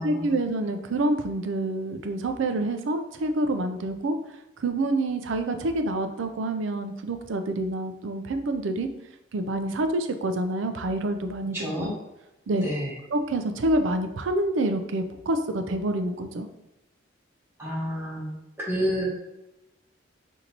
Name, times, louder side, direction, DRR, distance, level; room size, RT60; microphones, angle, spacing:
voice 1, 0.0-4.2 4.6-8.9 9.3-11.9 12.5-12.7 13.1-16.5, right 2 dB, 85° right, 7 dB, 0.4 m, -27 dB
voice 2, 11.5-12.0 12.5-12.9 17.6-18.3 18.6-19.0, equal, 10° right, -6 dB, 1.2 m, -29 dB
5.2 x 2.7 x 2.9 m, 0.94 s
head